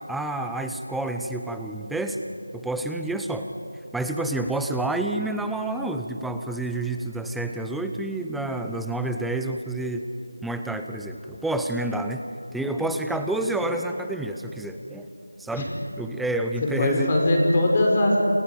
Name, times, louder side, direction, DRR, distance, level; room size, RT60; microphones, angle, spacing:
voice 1, 0.1-2.2 2.5-3.5 3.9-10.1 10.4-15.1 15.4-15.7 16.0-17.1, right 2 dB, ahead, 6 dB, 0.6 m, -29 dB
voice 2, 16.6-18.2, left 1 dB, 25° left, 0 dB, 5.1 m, -21 dB
28.5 x 27.5 x 5.2 m, 2.8 s
figure-of-eight pair, 170°, 0 cm